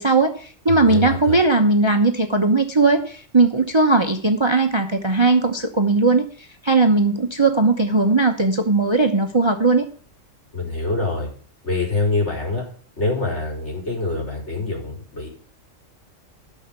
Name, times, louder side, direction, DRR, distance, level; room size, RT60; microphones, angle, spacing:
voice 1, 0.0-6.3 6.6-9.9, right 3 dB, 25° right, 6 dB, 0.9 m, -18 dB
voice 2, 0.7-1.4 10.5-11.3 11.6-12.7 13.0-15.3, left 3 dB, 60° left, -2 dB, 4.8 m, -25 dB
12.5 x 6.4 x 6.9 m, 0.43 s
omnidirectional pair, 1.3 m